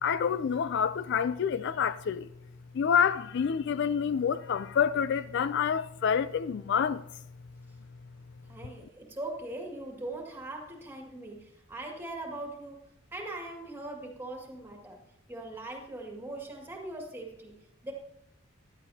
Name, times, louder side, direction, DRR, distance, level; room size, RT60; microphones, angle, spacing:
voice 1, 0.0-2.3 2.7-7.0, left 7 dB, 55° left, 0.3 m, -27 dB
voice 2, 8.5-12.8 13.1-15.0 15.3-17.5 17.8-17.9, right 2 dB, 10° right, 2.0 m, -40 dB
15.5 x 11.5 x 2.8 m
head